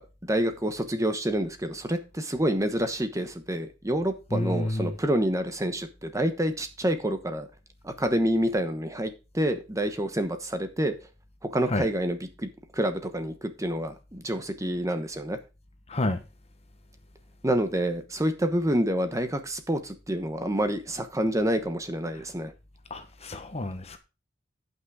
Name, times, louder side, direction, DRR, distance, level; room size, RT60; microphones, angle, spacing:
voice 1, 0.0-7.5 7.8-10.9 11.4-15.4 17.4-22.5, right 1 dB, 15° right, 1.1 m, -28 dB
voice 2, 4.3-4.9 11.7-11.9 15.9-16.2 22.9-24.0, left 1 dB, 35° left, 1.2 m, -29 dB
10.5 x 6.0 x 4.9 m
head